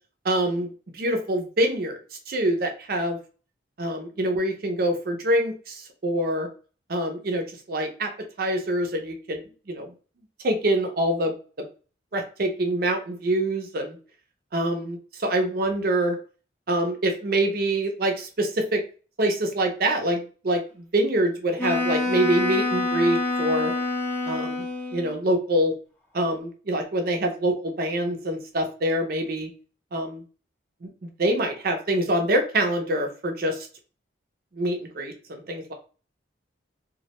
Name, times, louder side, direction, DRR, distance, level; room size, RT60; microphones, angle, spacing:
voice 1, 0.2-2.0 2.3-3.2 3.8-6.5 6.9-8.1 8.4-9.9 10.4-11.7 12.1-14.0 14.5-16.2 16.7-18.8 19.2-23.7 24.3-24.7 24.9-25.7 26.1-29.5 29.9-30.2 30.8-33.7 34.5-35.7, right 1 dB, 50° right, 4 dB, 0.5 m, -25 dB
Wind instrument woodwind instrument, 21.6-25.2, left 2 dB, 10° left, 0.5 m, -26 dB
2.2 x 2.1 x 2.8 m, 0.37 s
head